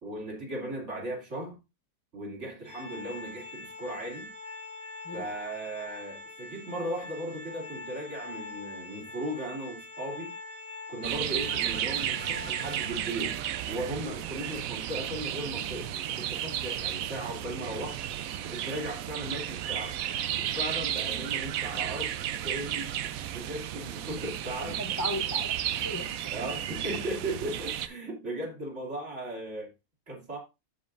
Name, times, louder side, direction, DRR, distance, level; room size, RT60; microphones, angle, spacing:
voice 1, 0.0-1.6 2.1-4.3 5.1-10.3 10.9-13.4 13.7-18.0 18.4-20.0 20.4-22.1 22.4-22.9 23.3-24.8 26.3-29.7 30.1-30.4, right 1 dB, 50° right, 2.9 m, -37 dB
Organ, 2.7-13.4, left 3 dB, 35° left, 1.6 m, -43 dB
sound 1, 11.0-27.9, right 10 dB, 70° right, 1.0 m, -33 dB
voice 2, 24.6-25.5 25.8-26.5, left 1 dB, 20° left, 0.6 m, -37 dB
14.5 x 5.3 x 2.6 m
omnidirectional pair, 1.6 m